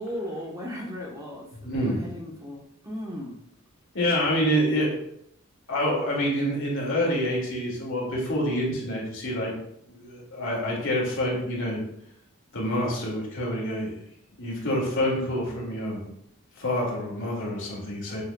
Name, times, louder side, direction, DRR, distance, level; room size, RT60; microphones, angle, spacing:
voice 1, 0.0-3.4, equal, 15° right, -2 dB, 1.0 m, -36 dB
voice 2, 1.6-2.0 3.9-4.9 5.7-9.5 9.9-11.8 12.5-14.0 14.4-16.1 16.6-18.2, equal, 55° left, -3 dB, 2.3 m, -27 dB
7.2 x 6.5 x 2.3 m, 0.74 s
head